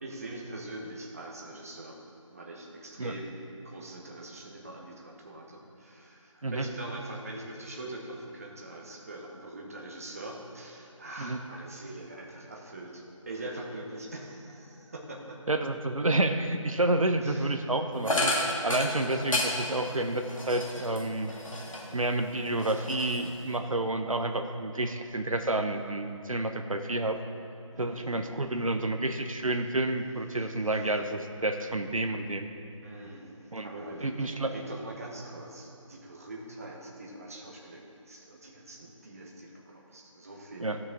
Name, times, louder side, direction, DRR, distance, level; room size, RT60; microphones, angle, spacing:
voice 1, 0.0-2.0 2.3-15.4 17.2-17.7 18.8-18.9 27.7-28.8 30.4-30.5 32.8-40.8, right 1 dB, 25° right, -1 dB, 0.9 m, -43 dB
voice 2, 15.5-18.3 18.6-21.3 21.9-27.2 27.8-32.5 33.5-33.7 34.0-34.5 40.6-40.8, right 2 dB, 75° right, 6 dB, 0.8 m, -29 dB
sound 1, 18.0-22.0 22.4-23.6, left 1 dB, 75° left, 1.9 m, -32 dB
15.5 x 6.1 x 3.7 m, 2.8 s
figure-of-eight pair, 160°, 17 cm